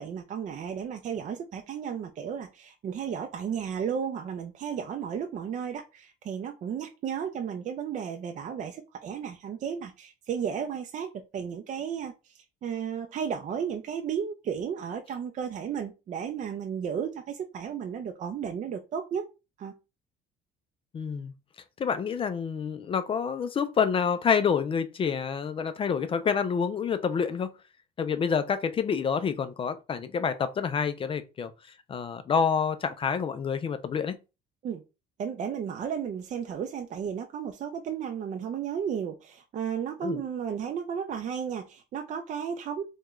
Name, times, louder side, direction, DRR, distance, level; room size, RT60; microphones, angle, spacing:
voice 1, 0.0-19.3 19.6-19.8 34.6-34.8 35.2-42.8, right 7 dB, 45° right, 0.4 m, -34 dB
voice 2, 20.9-21.3 21.8-27.5 28.0-31.5 31.9-34.1 40.0-40.2, left 6 dB, 30° left, 0.4 m, -28 dB
3.5 x 2.2 x 3.0 m
cardioid pair, 110°, 17 cm